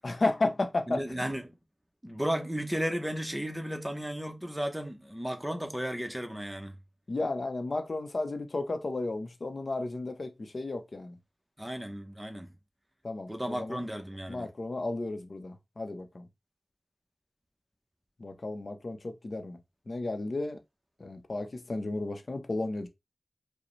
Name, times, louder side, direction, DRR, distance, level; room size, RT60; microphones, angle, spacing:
voice 1, 0.0-1.0 7.1-11.1 13.0-13.8 14.3-16.2 18.2-19.6 19.9-20.6 21.0-22.9, left 2 dB, 65° left, 0.7 m, -33 dB
voice 2, 0.9-1.5 2.0-6.7 11.6-12.5 13.3-14.5, equal, 10° right, 0.9 m, -34 dB
4.9 x 2.2 x 3.1 m
wide cardioid pair, 50°, 0 cm